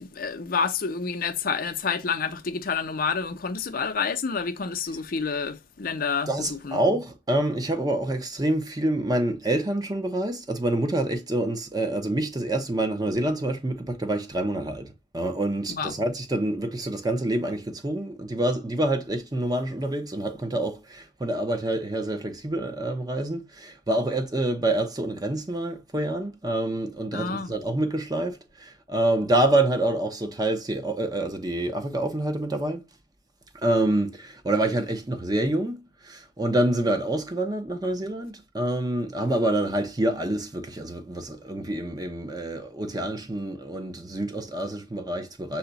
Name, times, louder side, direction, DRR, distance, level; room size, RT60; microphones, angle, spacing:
voice 1, 0.0-6.8 15.7-16.0 27.1-27.5, left 5 dB, 55° left, 0.6 m, -29 dB
voice 2, 6.3-32.8 33.6-45.6, right 1 dB, 20° right, 0.6 m, -27 dB
5.7 x 2.2 x 3.9 m
head